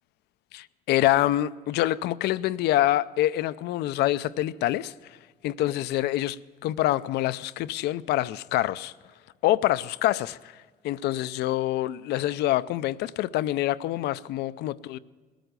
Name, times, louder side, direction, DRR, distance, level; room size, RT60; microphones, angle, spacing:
voice 1, 0.5-5.2 5.4-8.9 9.4-10.5 10.8-15.0, left 14 dB, 75° left, 0.5 m, -26 dB
19.5 x 9.0 x 6.7 m
cardioid pair, 110°, 17 cm